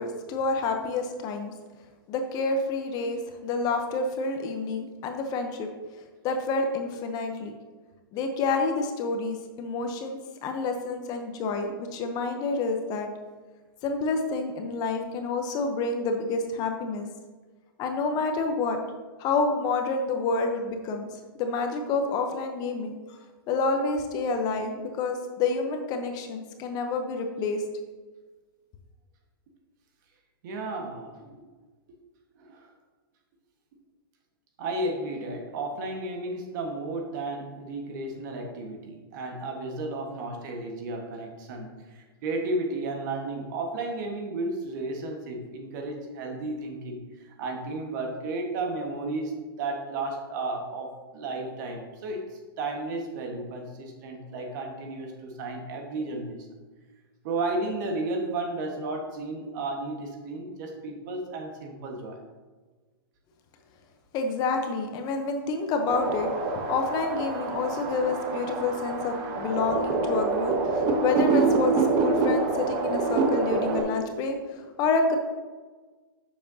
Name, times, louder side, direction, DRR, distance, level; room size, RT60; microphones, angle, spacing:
voice 1, 0.0-1.5 2.1-5.7 6.2-7.5 8.1-13.1 13.8-17.1 17.8-18.8 19.2-21.1 21.4-23.2 23.5-27.6 64.1-66.3 66.7-75.2, left 3 dB, 30° left, 5 dB, 0.8 m, -28 dB
voice 2, 30.4-31.4 32.4-32.7 34.6-56.5 57.2-62.2, right 2 dB, 50° right, 3 dB, 1.4 m, -33 dB
sound 1, 65.9-73.8, right 4 dB, 30° right, 1.0 m, -26 dB
8.3 x 6.7 x 2.8 m, 1.3 s
hypercardioid pair, 140°, 12 cm